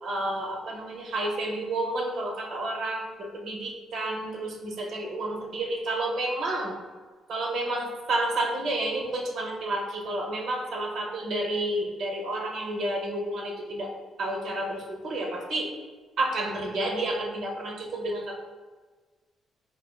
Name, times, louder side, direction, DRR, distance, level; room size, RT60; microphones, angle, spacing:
voice 1, 0.0-6.8 7.3-13.9 14.2-15.7 16.2-18.4, right 1 dB, 70° right, 0 dB, 0.6 m, -30 dB
3.8 x 2.6 x 2.3 m, 1.4 s
cardioid pair, 90°, 0 cm